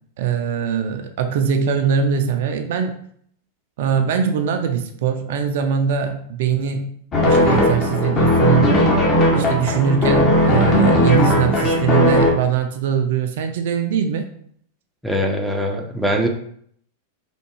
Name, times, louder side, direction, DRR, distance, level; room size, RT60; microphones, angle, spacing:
voice 1, 0.2-3.0 3.8-6.9 7.2-8.7 9.3-14.3, right 7 dB, 60° right, 6 dB, 0.3 m, -21 dB
sound 1, 7.1-12.3, left 1 dB, 30° left, 0.9 m, -17 dB
voice 2, 15.0-16.3, equal, ahead, 1 dB, 0.5 m, -22 dB
3.4 x 2.1 x 3.1 m, 0.65 s
figure-of-eight pair, 95°, 0 cm